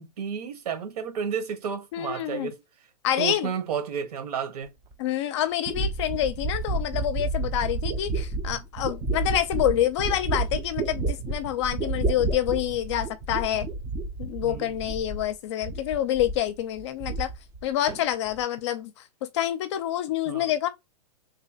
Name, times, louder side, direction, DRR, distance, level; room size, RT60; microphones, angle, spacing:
voice 1, 0.0-2.6 3.2-4.7 14.4-14.8 20.3-20.5, right 7 dB, 65° right, 1.5 m, -32 dB
voice 2, 1.9-2.5 3.0-3.5 5.0-13.7 14.2-17.3 17.6-18.9 19.2-20.7, left 12 dB, 45° left, 0.6 m, -27 dB
sound 1, 4.9-5.0 5.7-15.3 15.6-16.5 16.8-17.6 17.9-18.4, right 3 dB, 20° right, 0.6 m, -30 dB
3.3 x 2.9 x 2.8 m
hypercardioid pair, 145°, 21 cm